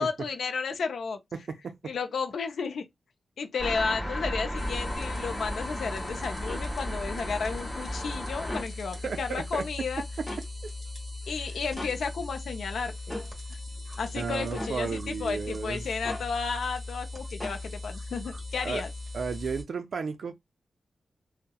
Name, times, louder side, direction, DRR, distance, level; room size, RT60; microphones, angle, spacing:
voice 1, 0.0-1.2 1.8-2.9 3.4-10.0 11.3-13.2 14.0-18.9, left 5 dB, 75° left, 0.4 m, -33 dB
voice 2, 1.3-1.9 8.9-9.9 10.2-10.3 11.3-11.4 14.1-15.9 18.6-18.8 19.1-20.3, right 5 dB, 60° right, 0.4 m, -34 dB
sound 1, 3.6-8.6, equal, ahead, 1.2 m, -34 dB
sound 2, 4.6-19.6, left 2 dB, 20° right, 1.1 m, -39 dB
sound 3, 6.5-6.7 8.4-8.7 10.3-10.5 11.8-12.0 13.1-13.3 14.5-14.8 16.0-16.3 17.4-17.6, left 1 dB, 15° left, 0.9 m, -37 dB
2.7 x 2.0 x 2.2 m
wide cardioid pair, 180°, 0 cm